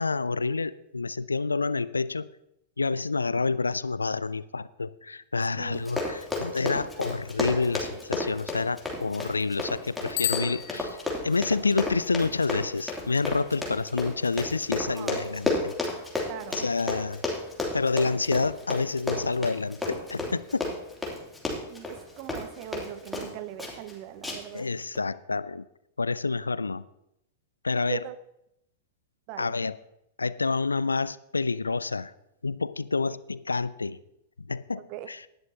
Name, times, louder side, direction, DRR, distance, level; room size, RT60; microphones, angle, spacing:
voice 1, 0.0-2.3 2.8-15.7 16.5-17.2 17.7-20.7 24.5-25.6 26.0-26.8 27.6-28.0 29.4-29.8 30.2-32.1 32.4-34.0 34.4-35.3, left 4 dB, 75° left, 17 dB, 0.4 m, -28 dB
Run, 5.7-23.3 23.6-23.9 24.2-24.6 24.9-25.0, left 2 dB, 5° left, 2.8 m, -32 dB
Bicycle bell, 10.1-11.4, left 13 dB, 40° left, 1.8 m, -32 dB
voice 2, 16.3-16.6 21.7-24.7 27.7-28.2 29.3-29.5 34.8-35.1, right 12 dB, 40° right, 13 dB, 0.8 m, -40 dB
18.5 x 11.0 x 2.8 m, 0.82 s
figure-of-eight pair, 95°, 0 cm